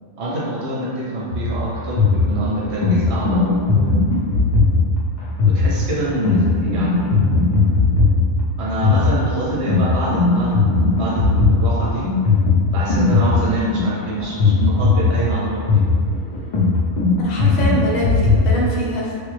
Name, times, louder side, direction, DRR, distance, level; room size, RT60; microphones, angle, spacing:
voice 1, 0.2-4.0 5.4-7.2 8.6-12.1 12.7-15.9, right 1 dB, 60° right, -6 dB, 0.8 m, -25 dB
sound 1, 1.3-18.6, left 3 dB, 60° left, 0.4 m, -18 dB
voice 2, 17.2-19.2, equal, 80° left, -4 dB, 1.1 m, -24 dB
3.3 x 2.1 x 3.1 m, 2.2 s
omnidirectional pair, 1.4 m